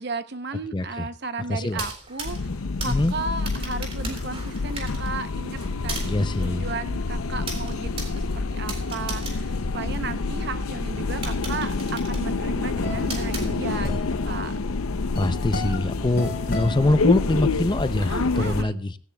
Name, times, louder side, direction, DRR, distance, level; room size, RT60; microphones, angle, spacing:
voice 1, 0.0-2.5 2.8-6.1 6.4-14.5 17.9-18.8, right 3 dB, 50° right, 11 dB, 0.8 m, -34 dB
voice 2, 0.7-1.1 1.5-1.8 2.9-3.1 6.0-6.7 15.2-18.9, left 2 dB, 20° left, 12 dB, 0.5 m, -24 dB
sound 1, 1.6-10.4 10.8-10.9 11.2-14.0, right 2 dB, 25° right, 3.7 m, -38 dB
sound 2, 2.2-18.6, left 3 dB, 90° left, 0.7 m, -28 dB
sound 3, 12.2-17.7, left 1 dB, 45° left, 4.4 m, -34 dB
17.0 x 16.5 x 2.3 m, 0.43 s
head